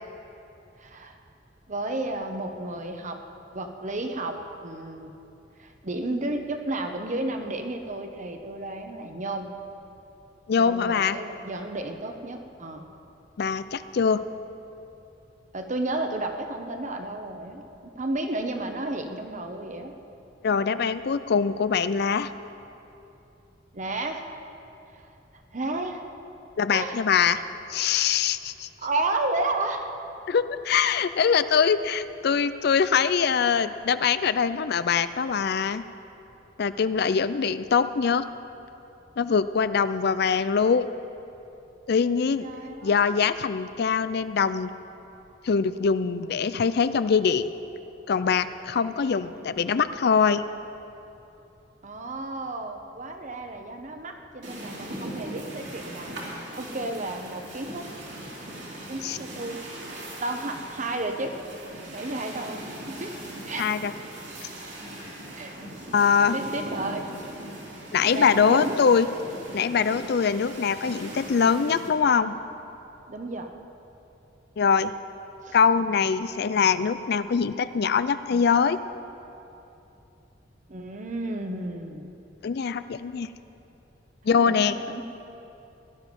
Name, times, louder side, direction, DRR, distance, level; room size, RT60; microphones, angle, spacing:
voice 1, 0.8-1.2 1.7-3.2 3.5-5.1 5.6-9.5 10.5-12.8 15.5-19.9 23.7-24.2 24.9-25.1 25.5-26.1 26.7-27.1 28.8-29.8 42.4-43.3 49.1-49.7 51.8-56.2 56.5-57.9 58.7-59.6 60.2-61.4 61.9-63.1 63.5-63.7 65.3-65.5 66.3-67.1 68.1-68.7 73.1-73.5 75.4-75.6 80.7-82.1 84.3-85.0, right 2 dB, 45° right, 5 dB, 1.0 m, -32 dB
voice 2, 10.5-11.2 13.4-14.2 20.4-22.3 26.6-27.4 27.7-28.7 30.3-35.8 36.6-38.3 39.2-40.9 41.9-42.4 42.8-44.7 45.4-47.5 48.1-50.4 59.0-59.2 63.6-63.9 65.9-66.4 67.9-69.1 69.5-72.3 74.6-74.9 75.5-78.8 82.4-83.3 84.3-84.8, left 6 dB, 60° left, 13 dB, 0.4 m, -23 dB
sound 1, 54.4-71.9, right 1 dB, 70° right, 3.3 m, -39 dB
17.0 x 11.0 x 5.3 m, 2.8 s
head